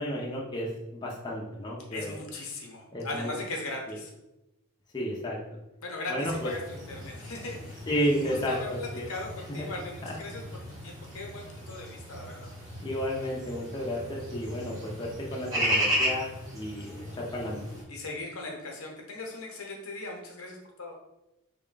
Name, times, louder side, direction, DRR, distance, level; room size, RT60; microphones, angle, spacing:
voice 1, 0.0-2.1 2.9-3.3 3.9-4.0 4.9-5.4 6.1-6.5 7.6-9.1 9.6-9.7 10.0-10.1 12.8-17.6, equal, 20° left, -4 dB, 0.6 m, -32 dB
voice 2, 1.9-4.1 5.8-10.4 10.8-12.5 17.9-20.9, left 2 dB, 80° left, 0 dB, 0.9 m, -39 dB
sound 1, 6.3-17.8, equal, 15° right, 1.0 m, -35 dB
3.7 x 2.2 x 3.8 m, 0.94 s
head